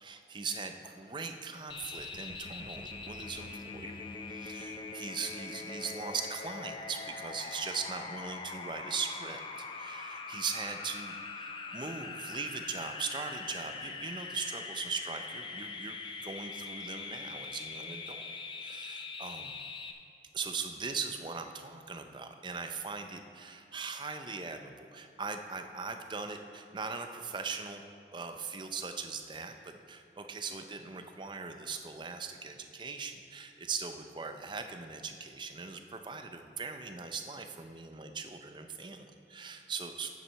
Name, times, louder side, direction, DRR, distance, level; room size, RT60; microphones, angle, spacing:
voice 1, 0.0-3.9 4.3-9.4 9.8-18.2 18.6-19.5 20.3-27.8 28.1-40.1, right 5 dB, 25° right, 6 dB, 0.6 m, -40 dB
sound 1, 1.7-19.9, left 4 dB, 25° left, 0.5 m, -42 dB
10.0 x 9.1 x 4.1 m, 2.7 s
head